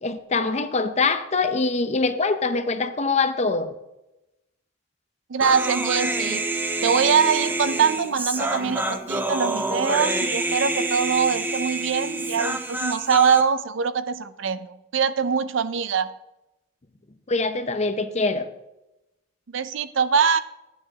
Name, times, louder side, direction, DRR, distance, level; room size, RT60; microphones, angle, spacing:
voice 1, 0.0-3.7 17.3-18.5, left 3 dB, 35° left, 9 dB, 0.7 m, -24 dB
voice 2, 5.3-6.5 6.8-16.1 19.5-20.4, right 6 dB, 75° right, 13 dB, 0.5 m, -23 dB
Human voice, 5.4-13.4, right 2 dB, 10° right, 0.5 m, -27 dB
12.5 x 9.1 x 2.9 m, 0.92 s
head